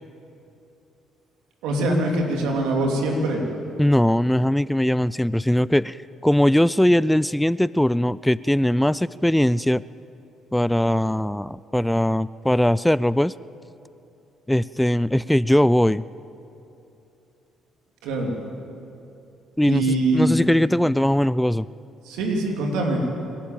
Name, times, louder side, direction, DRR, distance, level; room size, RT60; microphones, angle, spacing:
voice 1, 1.6-3.4 18.0-18.4 19.6-20.3 22.0-23.1, right 2 dB, 85° right, 1 dB, 3.1 m, -23 dB
voice 2, 3.8-6.0 6.2-9.8 10.5-13.3 14.5-16.0 19.6-21.7, left 1 dB, 5° left, 19 dB, 0.4 m, -20 dB
25.5 x 11.5 x 9.0 m, 2.8 s
supercardioid pair, 65°, 0 cm